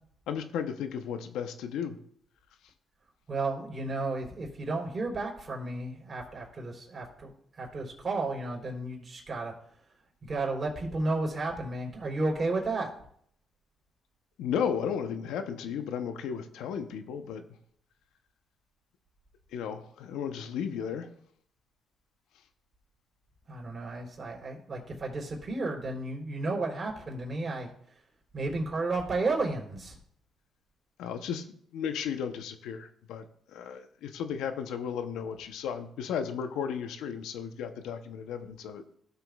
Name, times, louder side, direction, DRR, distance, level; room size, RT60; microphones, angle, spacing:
voice 1, 0.3-2.0 14.4-17.4 19.5-21.1 31.0-31.4 31.7-33.2 33.5-38.8, left 7 dB, 85° left, 8 dB, 0.7 m, -34 dB
voice 2, 3.3-7.3 7.6-9.5 10.3-12.9 23.5-27.7 28.3-30.0, right 2 dB, 35° right, -1 dB, 3.4 m, -32 dB
16.0 x 6.8 x 2.3 m, 0.66 s
cardioid pair, 90°, 0 cm